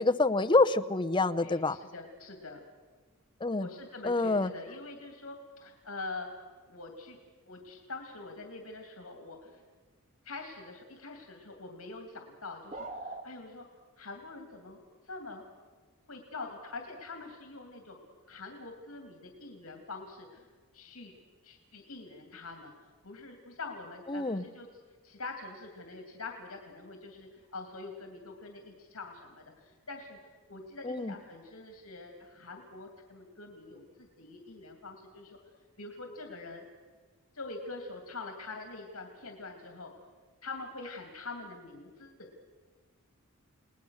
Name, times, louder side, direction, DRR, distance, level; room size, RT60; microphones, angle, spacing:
voice 1, 0.0-1.8 3.4-3.7 4.0-4.5 24.1-24.4 30.8-31.1, left 3 dB, 20° left, 9 dB, 0.7 m, -26 dB
voice 2, 1.4-2.6 3.6-6.3 6.6-7.2 7.5-9.6 10.2-13.6 14.0-15.5 16.1-18.0 18.3-20.5 20.7-21.1 21.4-24.7 25.0-30.2 30.5-35.4 35.8-36.6 37.3-39.9 40.4-42.3, left 3 dB, 75° left, 3 dB, 2.7 m, -44 dB
sound 1, 12.7-13.3, right 2 dB, 35° right, 1.7 m, -40 dB
30.0 x 19.0 x 6.5 m, 1.4 s
head